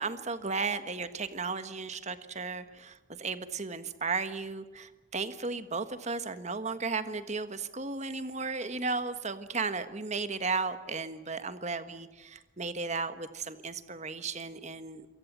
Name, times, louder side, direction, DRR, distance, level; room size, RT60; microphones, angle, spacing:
voice 1, 0.0-15.1, right 4 dB, 35° right, 11 dB, 1.5 m, -35 dB
27.5 x 23.5 x 7.5 m, 1.1 s
head